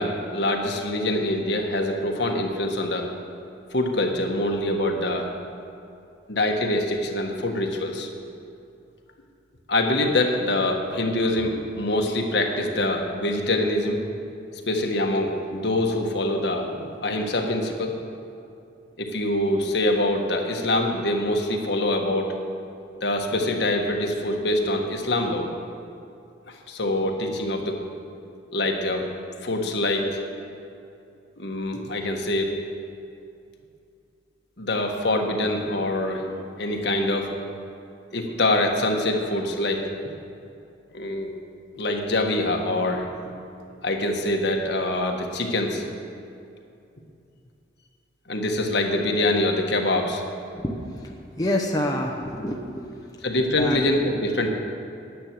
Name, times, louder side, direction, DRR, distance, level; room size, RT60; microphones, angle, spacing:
voice 1, 0.0-3.1 3.7-5.3 6.3-8.1 9.7-14.0 14.7-18.0 19.0-22.3 23.0-25.5 26.5-27.7 28.5-29.1 29.4-30.2 31.4-32.5 34.6-37.3 38.1-39.8 40.9-41.3 41.8-43.3 43.8-45.9 48.3-50.2 53.2-54.6, left 1 dB, 65° left, 2 dB, 1.4 m, -24 dB
voice 2, 50.6-51.0 51.4-52.9 53.5-53.8, left 1 dB, 20° left, 0 dB, 0.9 m, -27 dB
10.0 x 10.0 x 7.6 m, 2.6 s
head